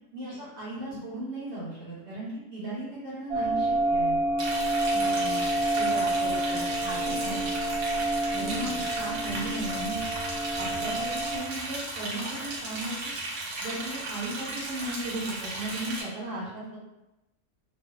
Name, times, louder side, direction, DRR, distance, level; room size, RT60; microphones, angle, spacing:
voice 1, 0.1-4.2 5.7-6.2 7.0-7.4 8.4-10.0 10.6-13.1 13.6-16.8, right 2 dB, 50° right, -7 dB, 1.1 m, -36 dB
sound 1, 3.3-11.4, right 1 dB, 20° right, 0.7 m, -28 dB
Liquid, 4.4-16.0, right 2 dB, 75° right, 1.2 m, -35 dB
voice 2, 4.9-7.5 8.3-8.8, right 2 dB, 60° left, -6 dB, 1.1 m, -39 dB
3.2 x 2.4 x 2.4 m, 0.96 s
omnidirectional pair, 1.6 m